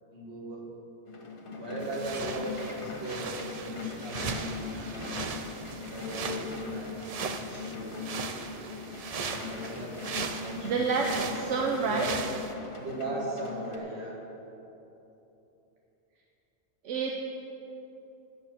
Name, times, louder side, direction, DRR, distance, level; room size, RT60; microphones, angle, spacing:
voice 1, 0.1-0.7 1.5-5.1 5.8-8.8 9.3-10.8 11.8-12.2 12.8-14.2, right 1 dB, 65° right, -4 dB, 2.2 m, -38 dB
sound 1, 1.1-13.8, left 4 dB, 50° left, 1.3 m, -40 dB
sound 2, 1.8-12.5, right 5 dB, 50° right, 0.4 m, -38 dB
voice 2, 10.6-12.1 16.8-17.1, right 4 dB, 85° right, 0 dB, 1.1 m, -28 dB
8.9 x 6.6 x 7.6 m, 3.0 s
omnidirectional pair, 1.2 m